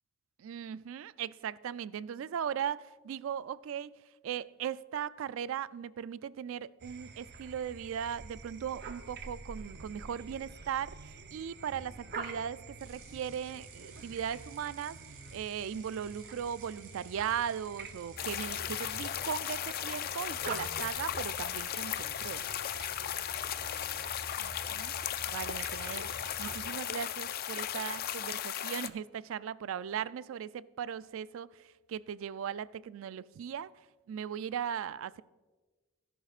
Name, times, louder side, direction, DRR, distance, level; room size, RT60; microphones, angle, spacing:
voice 1, 0.4-3.9 4.2-11.0 11.3-15.0 15.3-22.4 24.4-24.9 25.3-26.1 26.4-31.6 31.9-33.7 34.1-35.2, right 8 dB, 65° right, 18 dB, 0.3 m, -38 dB
sound 1, 6.8-26.7, right 3 dB, 50° right, 0.8 m, -47 dB
sound 2, 12.8-28.4, right 4 dB, 85° right, 3.0 m, -56 dB
sound 3, 18.2-28.9, left 10 dB, 45° left, 0.4 m, -36 dB
18.0 x 11.0 x 2.4 m, 1.3 s
head